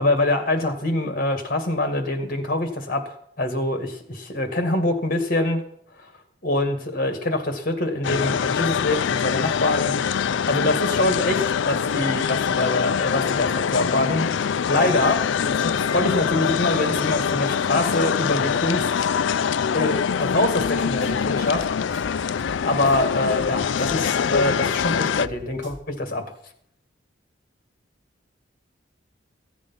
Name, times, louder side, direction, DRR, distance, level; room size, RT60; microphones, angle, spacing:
voice 1, 0.0-5.6 6.0-6.1 6.4-9.9 10.5-14.3 14.7-18.9 19.7-21.7 22.0-26.4, left 2 dB, 45° left, 6 dB, 2.1 m, -24 dB
sound 1, 8.0-25.3, left 7 dB, 75° left, 0.4 m, -24 dB
sound 2, 20.4-25.8, left 1 dB, 75° right, 2.2 m, -44 dB
15.5 x 8.5 x 5.8 m, 0.68 s
head